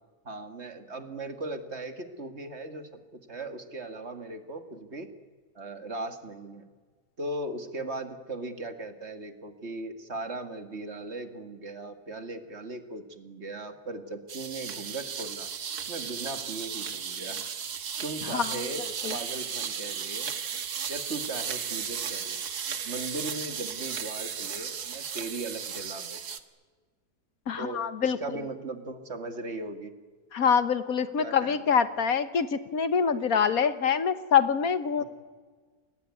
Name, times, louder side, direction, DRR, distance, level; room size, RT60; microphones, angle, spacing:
voice 1, 0.3-5.1 5.6-6.7 7.2-15.5 15.9-17.5 18.0-20.3 20.9-22.4 22.8-26.2 27.6-29.9 31.2-31.6 35.0-35.1, right 2 dB, 45° right, 8 dB, 2.1 m, -38 dB
sound 1, 14.3-26.4, right 7 dB, 75° right, 1.9 m, -35 dB
voice 2, 27.5-28.2 30.3-35.0, left 7 dB, 65° left, 12 dB, 1.5 m, -25 dB
29.5 x 20.0 x 9.6 m, 1.5 s
omnidirectional pair, 1.7 m